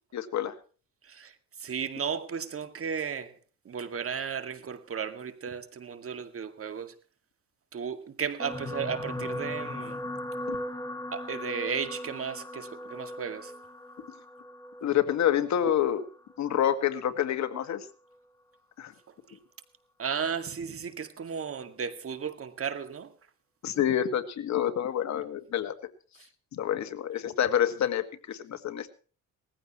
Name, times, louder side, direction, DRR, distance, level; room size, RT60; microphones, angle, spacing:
voice 1, 0.1-0.5 10.5-10.6 14.8-16.0 16.4-17.8 18.8-18.9 23.6-25.7 26.5-28.9, left 10 dB, 65° left, 1.8 m, -27 dB
voice 2, 1.0-3.4 3.6-7.0 7.7-10.0 11.1-13.5 19.1-19.4 20.0-23.2, right 7 dB, 50° right, 2.1 m, -35 dB
sound 1, 8.4-16.8 17.6-17.8 18.1-18.2, left 1 dB, 10° left, 2.0 m, -38 dB
19.5 x 15.0 x 3.0 m
cardioid pair, 90°, 30 cm